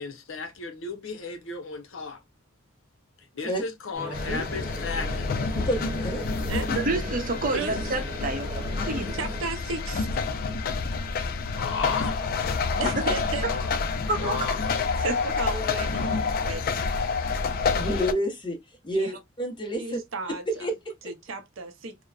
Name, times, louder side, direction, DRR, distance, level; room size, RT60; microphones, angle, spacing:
voice 1, 0.0-2.2 3.3-5.4 11.5-12.2 13.5-13.7 14.2-14.6, left 4 dB, 75° left, 0.6 m, -34 dB
sound 1, 3.9-9.5, equal, 25° right, 1.0 m, -38 dB
sound 2, 4.1-18.1, left 4 dB, 45° left, 0.3 m, -28 dB
voice 2, 5.7-6.2 17.8-18.6 18.8-19.1 19.4-20.0 20.5-20.9, right 1 dB, 25° left, 0.7 m, -28 dB
voice 3, 6.7-8.5 8.8-9.1 12.8-13.0 13.4-13.5 14.1-14.4 15.0-15.2, right 2 dB, 45° right, 0.7 m, -28 dB
voice 4, 8.9-10.1 12.8-13.5 15.0-16.9 18.9-19.2 19.8-20.7 21.0-22.0, right 3 dB, 80° right, 0.6 m, -34 dB
2.7 x 2.1 x 2.3 m
head